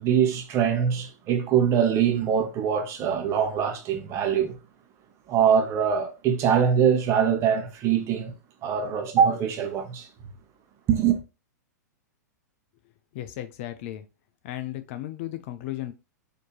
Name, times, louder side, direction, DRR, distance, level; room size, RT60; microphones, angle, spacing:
voice 1, 0.0-4.6 5.3-8.3 8.6-10.1 10.9-11.2, right 8 dB, 30° right, 0.9 m, -23 dB
voice 2, 13.1-14.0 14.4-15.9, left 14 dB, 45° left, 0.5 m, -35 dB
4.3 x 2.9 x 3.0 m
figure-of-eight pair, 100°, 10 cm